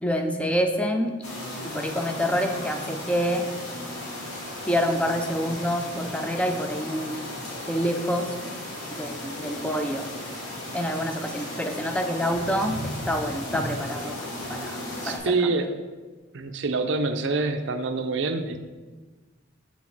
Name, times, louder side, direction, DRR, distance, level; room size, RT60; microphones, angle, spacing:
voice 1, 0.0-1.1 1.6-3.5 4.7-7.2 7.7-8.4 9.0-10.1 10.7-12.8 13.1-15.5, equal, 5° left, 5 dB, 0.5 m, -27 dB
sound 1, 1.2-15.2, left 1 dB, 90° left, 2.2 m, -35 dB
voice 2, 15.0-15.7 16.3-18.6, right 3 dB, 60° right, 8 dB, 0.5 m, -26 dB
6.1 x 4.2 x 5.9 m, 1.3 s
head